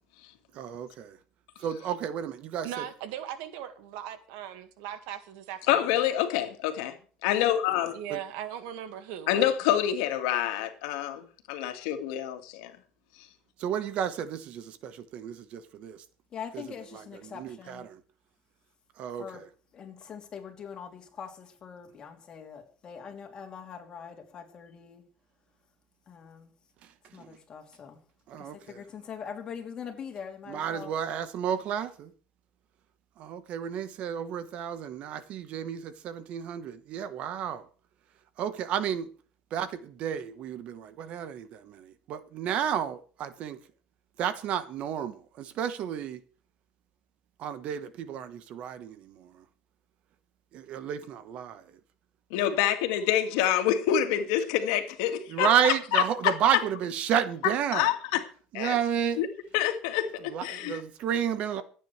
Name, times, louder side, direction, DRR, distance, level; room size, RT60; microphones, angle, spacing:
voice 1, 0.5-1.2 1.6-2.8 8.1-8.2 13.6-16.0 16.5-16.6 16.9-18.0 19.0-19.5 26.8-26.9 27.2-27.4 28.3-28.8 30.5-32.1 33.2-37.6 38.4-39.1 39.5-43.6 44.2-46.2 47.4-49.4 50.5-51.8 55.3-57.9 58.5-59.2 60.2-61.6, right 9 dB, 50° right, 1.3 m, -31 dB
voice 2, 2.6-5.9 7.9-9.5, right 10 dB, 80° right, 1.9 m, -39 dB
voice 3, 5.7-6.9 7.2-8.0 9.3-12.7 52.3-56.3 57.7-58.2 58.5-58.8 59.2-59.3 59.5-60.8, left 11 dB, 80° left, 2.0 m, -27 dB
voice 4, 16.3-17.9 19.2-19.4 19.7-25.0 26.1-26.5 27.1-28.0 28.4-30.9, left 7 dB, 30° left, 3.2 m, -43 dB
26.0 x 9.1 x 3.4 m
cardioid pair, 140°, 3 cm